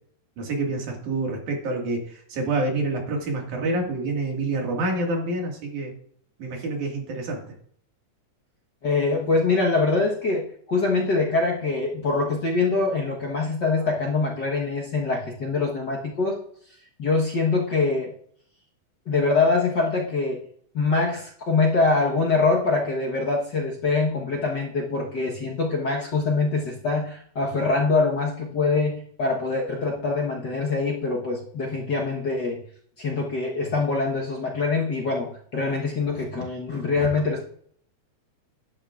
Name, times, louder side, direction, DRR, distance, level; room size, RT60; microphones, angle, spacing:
voice 1, 0.4-5.9 6.4-7.4, right 2 dB, 80° right, 1 dB, 3.5 m, -27 dB
voice 2, 8.8-16.4 17.0-18.1 19.1-20.4 20.7-32.6 33.0-37.4, left 3 dB, 50° left, -1 dB, 1.3 m, -24 dB
11.5 x 10.5 x 2.5 m, 0.62 s
omnidirectional pair, 3.4 m